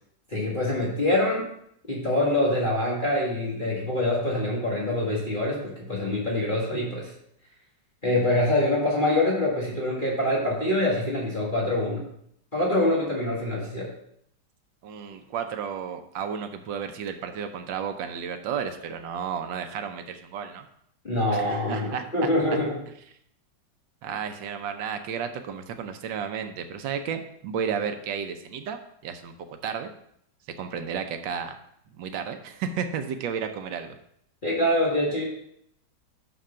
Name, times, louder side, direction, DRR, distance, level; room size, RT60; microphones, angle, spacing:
voice 1, 0.3-1.4 1.9-7.1 8.0-12.0 12.5-13.9 21.0-22.8 34.4-35.2, left 1 dB, 30° left, -5 dB, 1.8 m, -25 dB
voice 2, 14.8-20.7 21.3-22.0 24.0-29.3 29.6-29.9 30.6-31.6 32.0-34.0, right 7 dB, 90° right, 7 dB, 1.5 m, -32 dB
6.4 x 6.3 x 5.6 m, 0.72 s
omnidirectional pair, 2.0 m